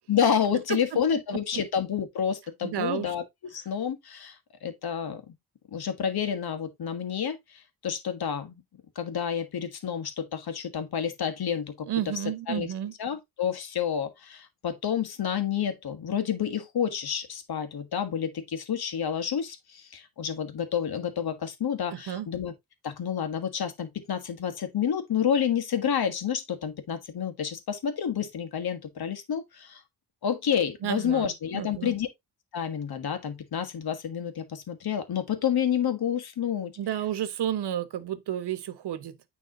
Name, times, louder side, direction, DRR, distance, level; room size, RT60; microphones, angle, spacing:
voice 1, 0.1-3.2 3.5-5.3 5.7-8.6 8.9-11.9 12.5-12.7 13.0-22.5 22.8-29.8 30.2-32.1 32.5-36.7, left 8 dB, 65° left, 1.5 m, -29 dB
voice 2, 2.6-3.1 11.9-12.9 21.9-22.3 30.8-32.0 36.8-39.2, right 11 dB, 85° right, 1.0 m, -32 dB
9.3 x 3.5 x 3.7 m
wide cardioid pair, 115°, 39 cm